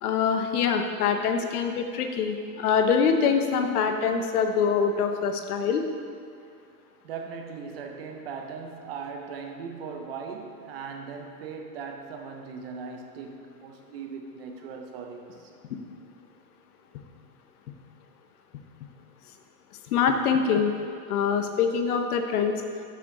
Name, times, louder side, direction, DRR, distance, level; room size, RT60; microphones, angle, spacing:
voice 1, 0.0-5.8 19.9-20.7 21.1-22.6, left 6 dB, 70° left, 5 dB, 0.9 m, -24 dB
voice 2, 7.0-15.5, right 5 dB, 40° right, 4 dB, 0.6 m, -39 dB
8.1 x 5.9 x 3.6 m, 2.3 s
supercardioid pair, 160°, 47 cm